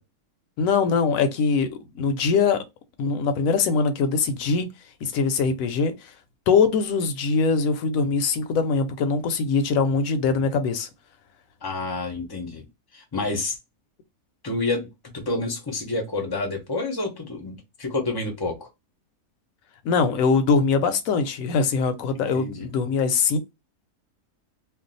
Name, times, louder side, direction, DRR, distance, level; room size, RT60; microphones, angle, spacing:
voice 1, 0.6-1.7 1.9-2.6 3.0-4.7 5.0-6.1 6.5-10.9 19.8-23.4, left 5 dB, 70° left, 0.9 m, -22 dB
voice 2, 11.6-12.7 12.9-13.6 14.4-18.7 22.1-22.6, left 2 dB, 25° left, 0.5 m, -29 dB
2.5 x 2.2 x 3.9 m
omnidirectional pair, 1.6 m